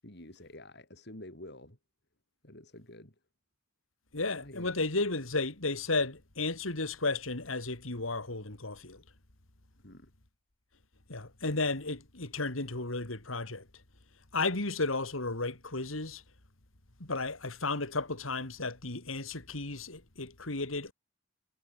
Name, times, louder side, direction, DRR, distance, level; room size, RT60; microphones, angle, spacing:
voice 1, 0.0-1.8 2.4-3.1 4.4-4.7 9.8-10.1, left 1 dB, 55° left, 7.8 m, -49 dB
voice 2, 4.1-9.0 11.1-13.6 14.3-16.2 17.0-20.9, left 3 dB, 90° left, 3.3 m, -33 dB
head